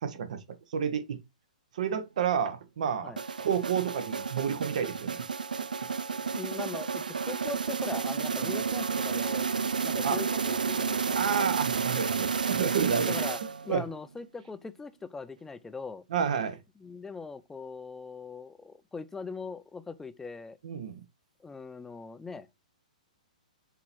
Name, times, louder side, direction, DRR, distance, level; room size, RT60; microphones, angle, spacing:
voice 1, 0.0-0.4 0.7-1.2 1.7-3.1 3.4-5.2 6.2-6.3 8.4-8.5 10.0-10.2 11.1-13.1 13.7-13.8 16.1-16.6 20.6-21.0, right 7 dB, 65° right, 1.2 m, -30 dB
sound 1, 3.2-13.8, right 5 dB, 85° right, 0.4 m, -31 dB
voice 2, 6.3-9.5 9.8-11.2 13.1-13.4 13.6-16.0 16.8-20.6 21.4-22.5, left 4 dB, 10° left, 0.5 m, -40 dB
7.5 x 3.0 x 4.3 m
hypercardioid pair, 125°, 4 cm